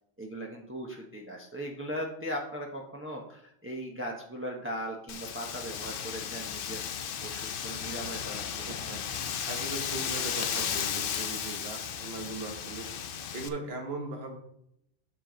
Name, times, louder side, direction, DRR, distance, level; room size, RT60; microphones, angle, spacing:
voice 1, 0.2-6.8 7.2-8.9, equal, 15° right, 0 dB, 0.8 m, -38 dB
Wind, 5.1-13.5, left 8 dB, 65° left, 0.8 m, -35 dB
voice 2, 8.7-12.9 13.3-14.4, right 3 dB, 70° right, 2 dB, 1.4 m, -39 dB
7.8 x 5.9 x 3.8 m, 0.74 s
omnidirectional pair, 1.1 m